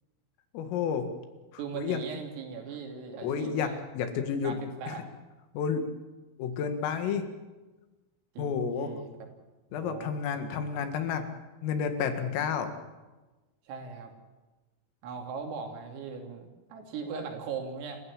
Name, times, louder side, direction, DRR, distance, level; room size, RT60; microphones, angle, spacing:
voice 1, 0.5-1.1 1.7-2.0 3.2-4.6 4.9-5.0 5.5-5.8 6.4-7.3 8.4-8.9 9.7-11.3 11.6-12.7, left 7 dB, 85° left, 7 dB, 4.5 m, -30 dB
voice 2, 1.6-3.8 4.4-5.1 8.4-9.3 9.7-10.1 13.7-14.1 15.0-18.0, right 5 dB, 85° right, 3 dB, 5.6 m, -39 dB
28.5 x 14.5 x 8.6 m, 1.2 s
omnidirectional pair, 5.8 m